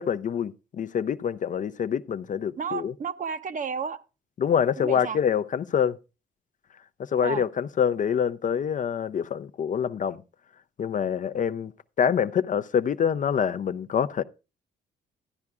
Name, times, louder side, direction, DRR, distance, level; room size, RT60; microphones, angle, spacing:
voice 1, 0.0-2.9 4.4-6.0 7.1-10.2 10.8-11.7 12.0-14.2, left 8 dB, 40° left, 0.4 m, -26 dB
voice 2, 2.6-4.0 4.8-5.2 7.2-7.4, right 6 dB, 40° right, 0.7 m, -32 dB
13.5 x 9.5 x 2.3 m
cardioid pair, 90°, 20 cm